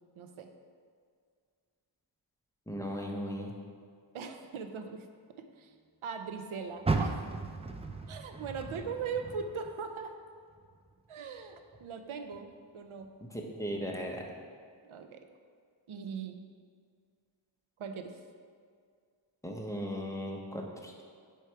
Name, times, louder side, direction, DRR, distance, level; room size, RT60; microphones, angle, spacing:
voice 1, 0.2-0.5 4.1-5.1 5.4-5.7 6.0-7.2 8.1-10.2 11.1-12.5 12.7-13.1 14.8-15.3 15.9-16.4 17.8-18.2, right 5 dB, 85° right, 7 dB, 0.6 m, -40 dB
voice 2, 2.7-3.5 13.3-14.2 19.4-21.0, equal, 5° left, 0 dB, 0.7 m, -37 dB
Car, 6.8-10.1 10.5-11.9 12.3-12.4 13.0-13.1, right 3 dB, 15° right, 0.4 m, -36 dB
4.7 x 4.6 x 5.7 m, 2.1 s
wide cardioid pair, 75°, 48 cm